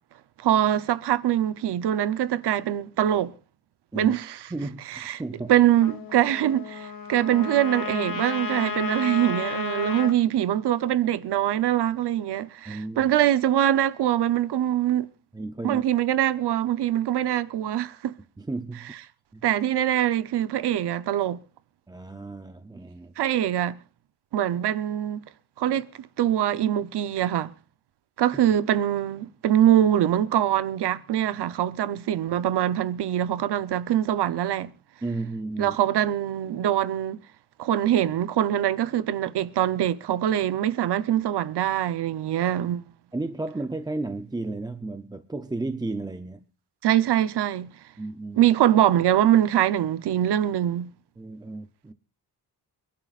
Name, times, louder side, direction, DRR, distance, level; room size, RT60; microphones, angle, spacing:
voice 1, 0.4-3.3 3.9-4.4 4.9-5.2 5.5-15.1 15.6-18.1 19.4-21.4 23.2-23.8 24.3-25.3 25.6-27.5 28.2-34.7 35.6-37.2 37.6-42.9 46.8-47.7 48.4-50.9, right 11 dB, 90° right, 0.9 m, -23 dB
voice 2, 4.5-5.5 12.7-13.1 15.3-15.8 18.4-18.9 19.3-19.4 21.9-23.1 35.0-35.8 43.1-46.4 48.0-48.4 51.2-51.9, right 2 dB, 10° right, 0.6 m, -33 dB
Trumpet, 5.8-10.1, left 5 dB, 60° left, 2.4 m, -32 dB
28.5 x 11.5 x 2.5 m
wide cardioid pair, 170°, 39 cm